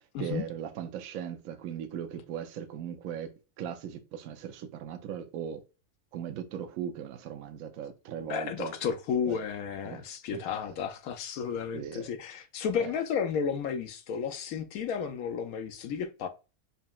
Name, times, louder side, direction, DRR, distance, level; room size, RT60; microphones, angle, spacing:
voice 1, 0.2-5.6 6.1-8.7 9.3-9.4 9.8-10.0 10.3-10.4 11.7-12.1 12.8-12.9, right 9 dB, 70° right, 0.9 m, -38 dB
voice 2, 8.3-16.3, left 7 dB, 75° left, 1.0 m, -32 dB
5.1 x 2.8 x 2.3 m
omnidirectional pair, 1.6 m